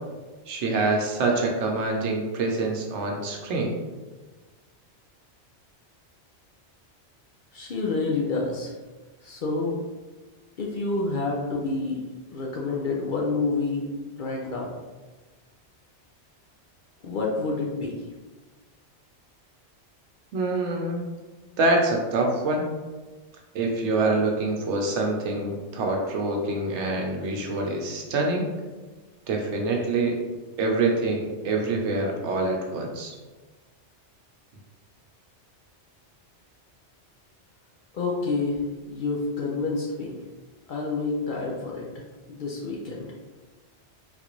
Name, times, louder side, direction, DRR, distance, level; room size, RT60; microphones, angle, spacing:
voice 1, 0.5-3.7 20.3-21.0 21.6-22.7 23.5-28.5 29.3-30.2 30.6-33.1, right 2 dB, 80° right, 1 dB, 0.9 m, -25 dB
voice 2, 7.5-8.7 9.2-9.8 10.6-12.0 12.3-13.9 14.2-14.8 17.0-18.0 37.9-38.6 38.9-40.2 40.7-41.9 42.3-43.1, left 3 dB, 60° left, -3 dB, 0.6 m, -28 dB
3.7 x 2.5 x 3.0 m, 1.3 s
omnidirectional pair, 1.2 m